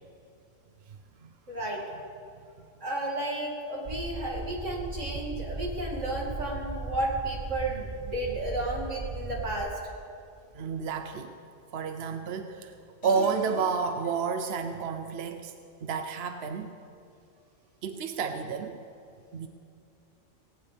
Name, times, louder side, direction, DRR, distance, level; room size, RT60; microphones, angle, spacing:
voice 1, 1.5-1.8 2.8-9.7, right 1 dB, 85° right, -3 dB, 2.9 m, -32 dB
sound 1, 3.8-9.7, right 4 dB, 30° right, 0.7 m, -37 dB
voice 2, 10.5-11.3 11.7-12.7 13.0-15.5 15.8-16.7 17.8-18.8 19.3-19.5, right 5 dB, 65° right, 7 dB, 0.9 m, -30 dB
sound 2, 13.0-14.6, left 4 dB, 60° left, 1.6 m, -42 dB
18.0 x 18.0 x 3.5 m, 2.5 s
omnidirectional pair, 1.2 m